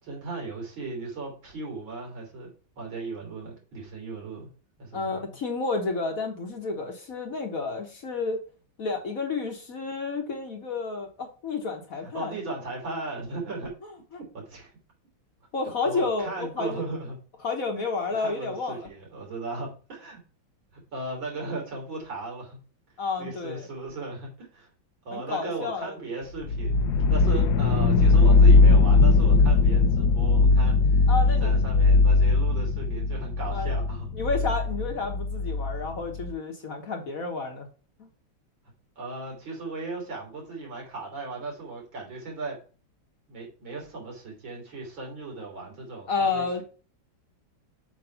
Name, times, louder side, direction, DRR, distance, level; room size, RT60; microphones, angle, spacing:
voice 1, 0.0-4.5 4.8-5.4 12.0-13.7 14.3-14.7 15.8-17.2 18.2-20.2 20.7-22.6 23.2-24.7 25.1-34.1 39.0-42.6 43.3-46.6, right 3 dB, 75° right, -1 dB, 3.6 m, -37 dB
voice 2, 4.9-8.4 8.8-12.4 15.5-16.8 17.4-18.9 23.0-23.7 25.1-25.9 31.1-31.5 33.5-33.7 34.1-37.7 38.0-38.1 46.1-46.6, left 4 dB, 50° left, 3 dB, 1.5 m, -30 dB
sound 1, 26.4-36.3, left 3 dB, 65° left, 1.1 m, -20 dB
7.8 x 3.2 x 5.6 m, 0.37 s
omnidirectional pair, 2.1 m